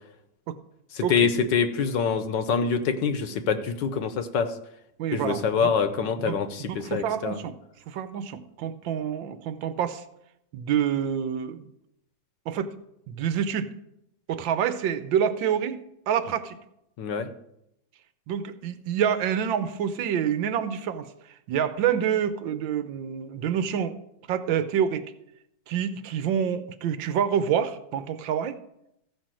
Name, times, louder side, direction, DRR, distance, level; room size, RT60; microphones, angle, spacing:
voice 1, 0.9-4.5 5.1-7.4 17.0-17.3, left 6 dB, 65° left, 9 dB, 1.4 m, -25 dB
voice 2, 5.0-5.7 6.2-7.6 7.9-10.0 10.5-11.7 12.5-12.7 13.1-13.7 14.3-16.6 18.3-21.1 21.5-23.9 24.3-25.1 25.7-28.6, right 8 dB, 75° right, 12 dB, 1.5 m, -27 dB
14.5 x 5.5 x 7.5 m, 0.81 s
omnidirectional pair, 2.2 m